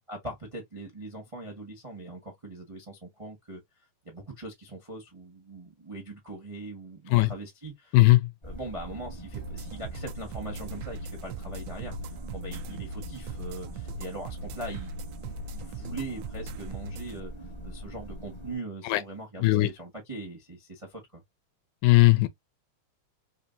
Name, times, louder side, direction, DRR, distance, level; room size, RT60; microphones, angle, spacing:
voice 1, 0.1-3.6 4.0-8.0 8.4-14.9 15.2-17.3 17.6-21.2, right 2 dB, 25° right, 0.6 m, -41 dB
voice 2, 7.9-8.3 18.8-19.0 19.4-19.7 21.8-22.3, left 20 dB, 80° left, 2.1 m, -19 dB
sound 1, 8.4-18.6, right 1 dB, 25° left, 0.8 m, -42 dB
sound 2, 9.3-17.1, right 2 dB, 80° right, 1.6 m, -40 dB
4.9 x 2.7 x 2.6 m
omnidirectional pair, 3.6 m